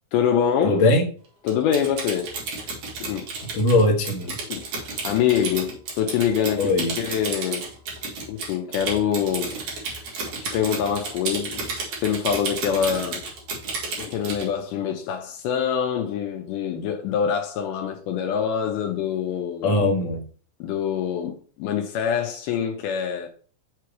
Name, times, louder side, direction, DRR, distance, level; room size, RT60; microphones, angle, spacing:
voice 1, 0.1-0.8 1.4-2.3 3.0-3.3 4.5-7.7 8.3-10.0 10.4-11.6 12.0-13.3 14.0-19.8 20.6-23.3, left 8 dB, 80° left, 2.2 m, -25 dB
voice 2, 0.6-1.1 3.5-4.4 6.6-6.9 19.6-20.3, left 2 dB, 60° left, 2.1 m, -20 dB
Typing, 1.5-14.5, right 4 dB, 65° right, 3.2 m, -32 dB
6.8 x 3.1 x 4.6 m
omnidirectional pair, 3.7 m